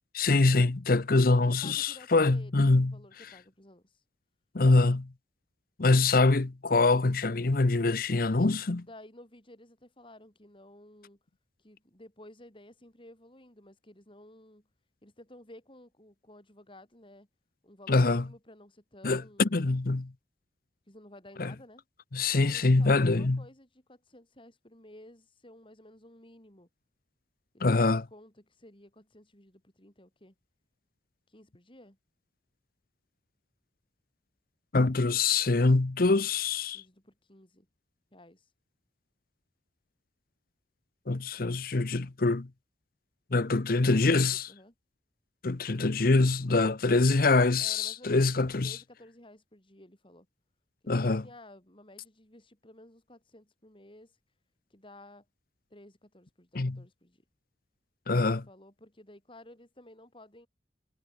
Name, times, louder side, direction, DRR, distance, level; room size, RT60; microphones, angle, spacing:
voice 1, 0.1-2.9 4.5-5.1 5.8-8.9 17.9-18.2 19.0-20.1 21.4-21.5 22.1-23.4 27.6-28.0 34.7-36.8 41.1-42.5 43.3-44.5 45.4-48.8 50.9-51.2 56.6-56.8 58.1-58.4, left 3 dB, 55° left, 0.8 m, -24 dB
voice 2, 1.2-4.0 8.9-11.2 11.6-14.7 15.0-17.3 17.6-19.7 20.9-21.8 22.4-26.7 27.5-30.3 31.3-32.0 36.7-37.7 38.1-38.5 43.7-44.7 47.6-48.3 48.6-50.3 50.8-54.2 54.7-55.2 55.7-57.2 58.1-60.5, left 1 dB, 30° left, 6.8 m, -54 dB
head